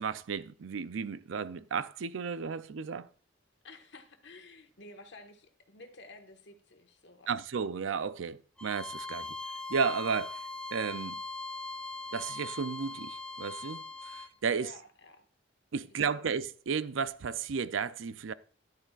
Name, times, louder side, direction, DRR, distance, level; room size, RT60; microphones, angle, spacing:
voice 1, 0.0-3.1 7.3-9.3 9.7-10.4 10.7-11.2 12.1-14.7 15.7-18.3, right 6 dB, 90° right, 0.5 m, -33 dB
voice 2, 3.6-7.3 14.5-15.2 15.8-16.3, left 2 dB, 70° left, 1.4 m, -52 dB
Bowed string instrument, 8.6-14.3, left 3 dB, 5° left, 0.6 m, -40 dB
12.5 x 10.5 x 2.4 m
head